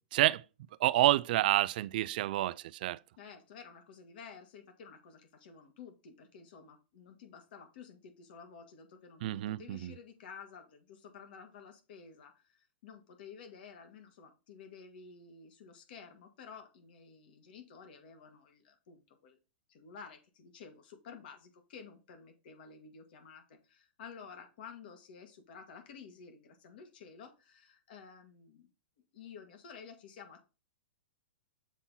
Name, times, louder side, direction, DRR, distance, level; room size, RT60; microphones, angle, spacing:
voice 1, 0.1-0.4 0.8-3.0 9.2-9.9, right 15 dB, 50° right, 0.4 m, -28 dB
voice 2, 3.2-19.4 19.7-28.7 29.1-30.4, left 6 dB, 55° left, 1.8 m, -52 dB
7.2 x 3.9 x 4.1 m
hypercardioid pair, 155°, 6 cm